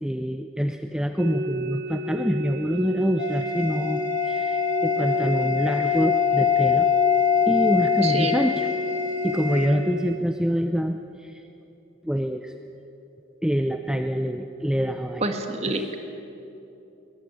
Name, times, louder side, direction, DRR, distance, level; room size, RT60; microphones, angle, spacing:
voice 1, 0.0-6.9 7.5-8.7 9.2-11.4 12.0-12.5 13.4-15.3 15.7-15.9, equal, 5° right, 6 dB, 0.6 m, -26 dB
sound 1, 1.2-10.2, right 1 dB, 50° right, 0.8 m, -31 dB
sound 2, 3.2-9.7, left 8 dB, 40° left, 2.2 m, -24 dB
voice 2, 8.0-8.3 15.2-16.0, right 2 dB, 35° right, 6 dB, 1.8 m, -27 dB
21.5 x 20.5 x 9.0 m, 2.9 s
head